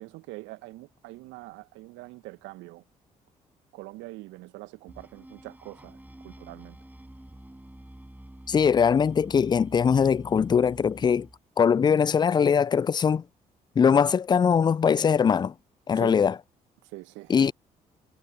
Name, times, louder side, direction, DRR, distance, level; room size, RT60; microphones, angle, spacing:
voice 1, 0.0-2.8 3.7-6.8 15.9-16.2 16.8-17.5, right 20 dB, 70° right, 1.7 m, -43 dB
sound 1, 4.9-11.4, right 1 dB, 10° right, 5.5 m, -48 dB
voice 2, 8.5-11.3 11.6-13.2 13.8-15.5 15.9-16.3 17.3-17.5, left 7 dB, 20° left, 0.3 m, -21 dB
figure-of-eight pair, 45°, 20 cm